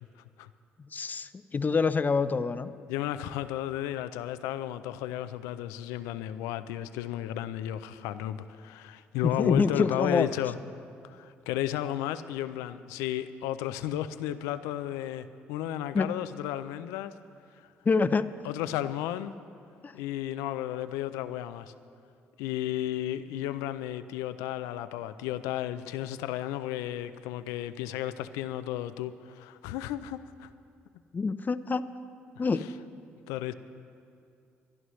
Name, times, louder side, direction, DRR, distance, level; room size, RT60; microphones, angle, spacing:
voice 1, 0.8-2.7 9.2-10.3 15.9-16.1 17.8-18.2 19.8-19.9 31.1-31.9 32.4-32.6, left 4 dB, 35° left, 12 dB, 0.6 m, -26 dB
voice 2, 2.9-10.6 11.0-17.1 18.4-19.3 19.9-21.7 22.4-30.5 33.3-33.5, left 12 dB, 85° left, 12 dB, 0.4 m, -33 dB
23.5 x 11.0 x 3.2 m, 2.4 s
supercardioid pair, 60°, 5 cm